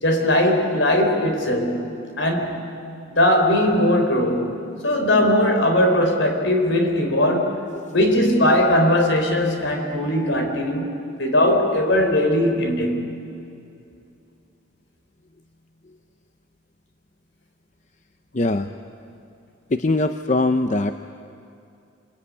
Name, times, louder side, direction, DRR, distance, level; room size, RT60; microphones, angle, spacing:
voice 1, 0.0-1.8 2.2-2.6 3.1-4.5 4.8-7.6 7.9-10.9 11.2-13.0, left 1 dB, 70° left, 4 dB, 4.2 m, -19 dB
voice 2, 18.3-18.7 19.7-20.9, left 2 dB, 40° left, 8 dB, 0.7 m, -21 dB
27.5 x 21.0 x 9.7 m, 2.6 s
head